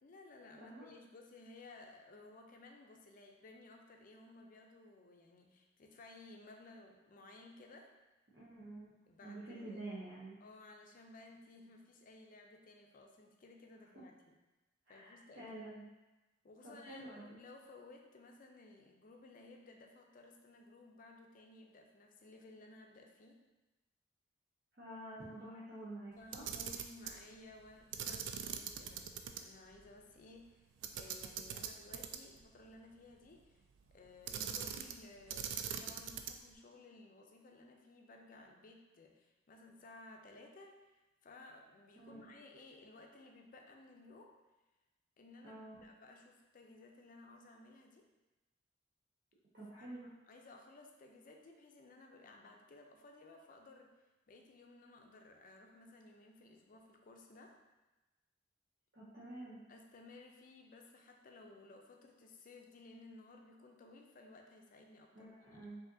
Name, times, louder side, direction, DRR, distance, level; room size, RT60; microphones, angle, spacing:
voice 1, 0.0-7.9 9.1-9.8 10.4-14.4 14.9-15.5 16.4-23.4 26.2-30.6 31.0-33.6 33.9-44.4 45.2-48.1 49.8-53.9 54.3-57.6 59.7-65.7, left 2 dB, 45° left, 2 dB, 0.5 m, -57 dB
voice 2, 0.6-0.9 8.3-8.9 9.2-10.4 14.9-15.8 16.6-17.4 24.8-26.4 34.4-34.7 42.0-42.3 45.4-45.8 49.5-50.1 58.9-59.6 65.1-65.8, right 1 dB, 55° right, -9 dB, 0.8 m, -49 dB
Camera, 26.2-27.2 27.9-29.4 29.7-29.8 30.8-32.4 34.3-35.0 35.3-36.5, right 8 dB, 75° right, 0.3 m, -42 dB
4.9 x 2.7 x 2.7 m, 1.1 s
head